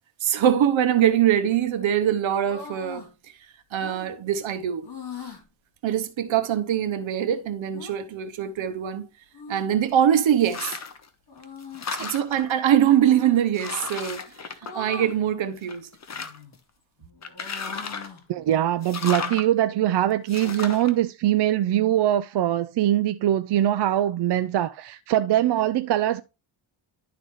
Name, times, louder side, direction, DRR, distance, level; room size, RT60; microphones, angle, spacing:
voice 1, 0.2-3.1 3.7-4.9 5.8-9.1 9.5-10.8 12.0-14.2 14.7-15.8, right 10 dB, 80° right, 1.0 m, -23 dB
sound 1, 2.4-3.1 3.8-4.1 4.8-5.4 7.7-7.9 9.3-10.0 11.3-11.9 13.0-13.4 14.6-15.2 16.1-16.6 17.0-18.3, left 4 dB, 60° left, 3.1 m, -41 dB
sound 2, 10.4-11.1 11.4-12.5 13.1-13.2 13.5-15.3 15.6-16.6 17.2-18.2 18.8-19.5 20.3-20.9, left 5 dB, 35° left, 0.9 m, -34 dB
voice 2, 18.3-26.2, right 12 dB, 60° right, 0.5 m, -22 dB
11.5 x 4.0 x 3.1 m
wide cardioid pair, 115°, 46 cm